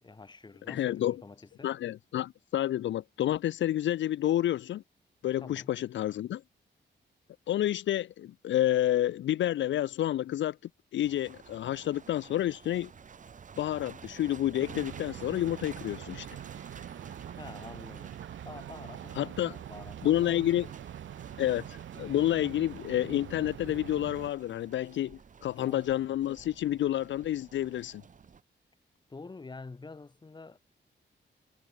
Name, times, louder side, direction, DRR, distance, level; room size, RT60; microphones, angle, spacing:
voice 1, 0.0-1.7 5.4-5.8 17.4-18.1 18.4-20.6 25.6-25.9 29.1-30.6, left 3 dB, 25° left, 3.4 m, -47 dB
voice 2, 0.7-1.2 1.6-4.8 5.2-6.4 7.5-10.6 10.9-12.9 13.6-16.3 19.2-19.5 20.0-20.7 21.4-28.0, left 12 dB, 75° left, 0.4 m, -29 dB
sound 1, 11.0-28.4, right 6 dB, 40° right, 1.4 m, -51 dB
sound 2, 14.6-24.3, right 10 dB, 90° right, 0.9 m, -44 dB
wide cardioid pair, 175°, 19 cm